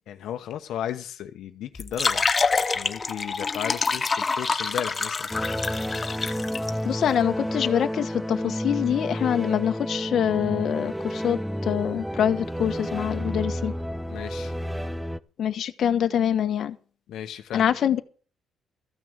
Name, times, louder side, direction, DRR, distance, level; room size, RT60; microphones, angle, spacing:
voice 1, 0.1-2.3 2.7-5.3 14.1-14.5 17.1-17.7, left 10 dB, 75° left, 1.1 m, -35 dB
sound 1, 1.8-6.7, left 4 dB, 25° left, 0.9 m, -26 dB
sound 2, 5.3-15.2, equal, 5° right, 0.6 m, -31 dB
voice 2, 6.8-13.7 15.4-16.8 17.5-18.0, left 9 dB, 55° left, 1.2 m, -25 dB
14.5 x 6.3 x 8.8 m
cardioid pair, 135°, 0 cm